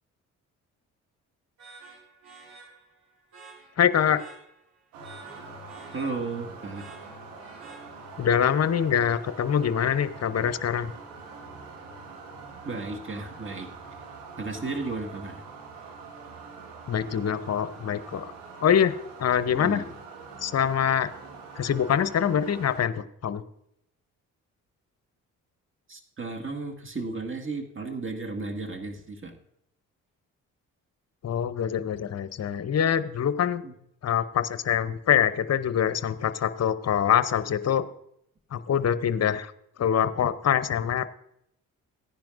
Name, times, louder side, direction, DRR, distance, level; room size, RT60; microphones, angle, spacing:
sound 1, 1.6-8.3, right 4 dB, 60° right, 4.9 m, -51 dB
voice 1, 3.8-4.2 8.2-10.9 16.9-18.3 18.6-19.8 20.4-21.1 21.5-23.4 31.2-33.6 34.0-37.8 38.5-39.5 39.8-41.1, left 8 dB, 40° left, 14 dB, 0.7 m, -24 dB
sound 2, 4.9-22.8, right 4 dB, 80° right, 1.7 m, -44 dB
voice 2, 5.9-6.8 12.6-13.7 14.4-15.4 19.5-19.9 25.9-29.4 33.6-33.7, right 3 dB, 30° right, 3 dB, 1.9 m, -34 dB
15.5 x 10.5 x 2.6 m, 0.75 s
hypercardioid pair, 45°, 41 cm